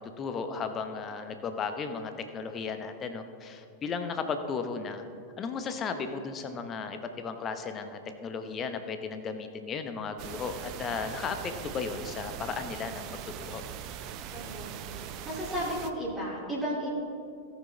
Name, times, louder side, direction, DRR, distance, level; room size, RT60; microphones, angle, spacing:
voice 1, 0.2-5.0 5.4-13.1 13.4-13.6, left 5 dB, 25° left, 8 dB, 0.9 m, -35 dB
sound 1, 10.2-15.9, right 9 dB, 40° right, 0.6 m, -41 dB
voice 2, 14.3-14.8 15.2-16.9, equal, 15° right, -5 dB, 2.6 m, -33 dB
17.5 x 6.3 x 4.0 m, 2.4 s
figure-of-eight pair, 90°, 0 cm